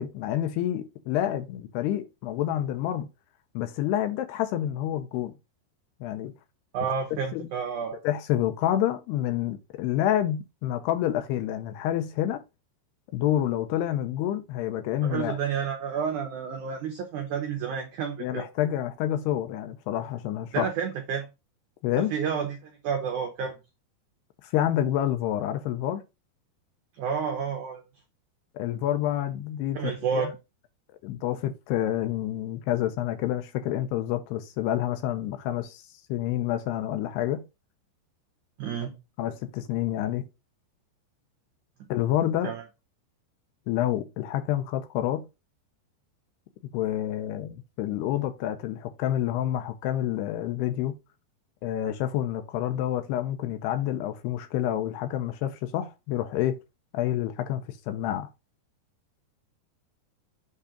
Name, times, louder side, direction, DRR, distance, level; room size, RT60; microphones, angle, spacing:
voice 1, 0.0-3.1 3.5-5.3 6.0-6.3 7.3-7.5 8.0-12.4 13.1-15.4 18.2-20.7 21.8-22.1 24.4-26.0 28.5-30.3 31.0-37.4 39.2-40.3 41.9-42.5 43.7-45.3 46.7-50.9 51.6-56.6 56.9-58.3, left 12 dB, 80° left, 2.6 m, -28 dB
voice 2, 6.7-8.0 15.0-18.5 20.5-21.3 22.0-23.5 27.0-27.8 29.7-30.3 38.6-38.9 42.4-42.6, right 6 dB, 80° right, 1.7 m, -30 dB
8.3 x 3.7 x 5.0 m
omnidirectional pair, 5.1 m